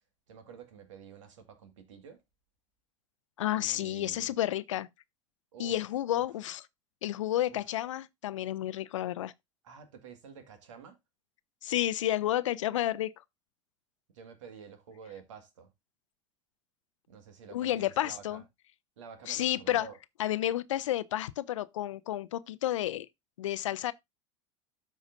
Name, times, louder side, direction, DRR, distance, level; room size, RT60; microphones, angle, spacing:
voice 1, 0.3-2.2 3.5-4.3 5.5-5.7 6.1-6.2 7.5-7.7 9.6-11.0 14.1-15.7 17.1-18.4 19.0-20.0, right 7 dB, 75° right, 1.9 m, -49 dB
voice 2, 3.4-4.9 5.6-6.6 7.0-9.3 11.6-13.1 17.5-18.4 19.3-19.9 20.2-23.1 23.4-23.9, left 13 dB, 75° left, 0.6 m, -31 dB
13.0 x 4.9 x 2.6 m
hypercardioid pair, 80°, 16 cm